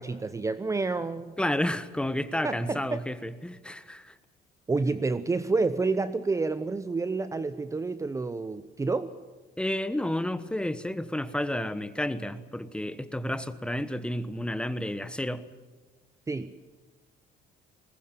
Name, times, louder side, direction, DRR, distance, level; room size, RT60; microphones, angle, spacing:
voice 1, 0.0-1.4 2.4-3.0 4.7-9.1 16.3-16.5, right 3 dB, 20° right, 13 dB, 0.8 m, -29 dB
voice 2, 1.4-4.1 9.6-15.4, left 1 dB, 5° left, 13 dB, 1.1 m, -31 dB
21.5 x 19.0 x 9.0 m, 1.2 s
cardioid pair, 110°, 17 cm